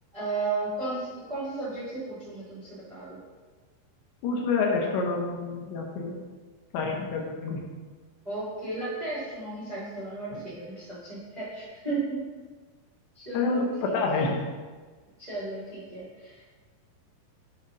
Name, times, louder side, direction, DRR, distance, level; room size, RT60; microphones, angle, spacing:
voice 1, 0.1-3.2 8.2-12.2 13.1-14.3 15.2-16.4, right 3 dB, 80° right, -11 dB, 0.4 m, -34 dB
voice 2, 4.2-6.2 6.7-7.6 13.3-14.4, left 4 dB, 75° left, -1 dB, 2.7 m, -28 dB
9.5 x 3.9 x 5.4 m, 1.4 s
omnidirectional pair, 5.9 m